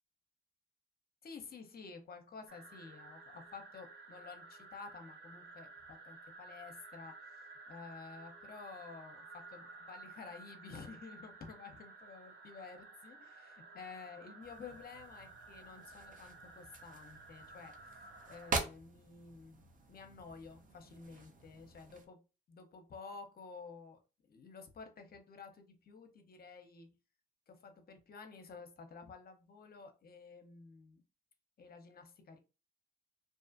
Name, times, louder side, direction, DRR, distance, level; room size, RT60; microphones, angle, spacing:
voice 1, 1.2-22.2 22.5-26.9 27.5-31.0 31.6-32.4, left 5 dB, 50° left, 6 dB, 0.7 m, -52 dB
sound 1, 2.5-18.5, right 3 dB, 80° right, 0.7 m, -54 dB
sound 2, 14.4-22.1, right 3 dB, 40° right, 0.7 m, -45 dB
2.5 x 2.4 x 2.5 m, 0.31 s
supercardioid pair, 70°, 21 cm